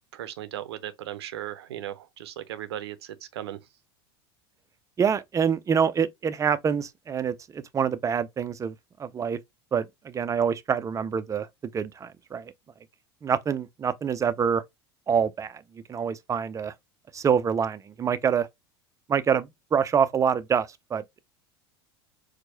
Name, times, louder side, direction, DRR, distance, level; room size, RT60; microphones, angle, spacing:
voice 1, 0.1-3.6, right 12 dB, 75° right, 0.5 m, -37 dB
voice 2, 5.0-8.7 9.0-9.4 9.7-11.5 11.7-12.5 13.2-14.6 15.1-15.6 15.9-16.7 17.1-18.5 19.1-21.2, right 7 dB, 25° right, 0.4 m, -26 dB
4.4 x 2.2 x 2.7 m
hypercardioid pair, 85°, 14 cm